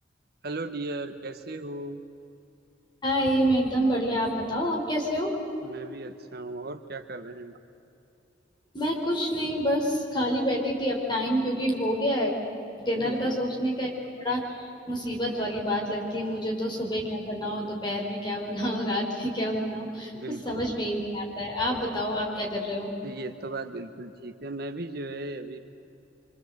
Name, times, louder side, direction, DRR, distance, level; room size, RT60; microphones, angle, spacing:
voice 1, 0.4-2.0 5.6-7.6 13.0-13.4 16.2-16.3 20.1-20.7 23.0-25.6, right 2 dB, 55° right, 8 dB, 1.2 m, -37 dB
voice 2, 3.0-5.3 8.7-12.3 12.8-13.9 14.2-20.1 20.5-22.9, equal, 25° left, -1 dB, 5.2 m, -28 dB
26.5 x 25.0 x 8.1 m, 2.8 s
head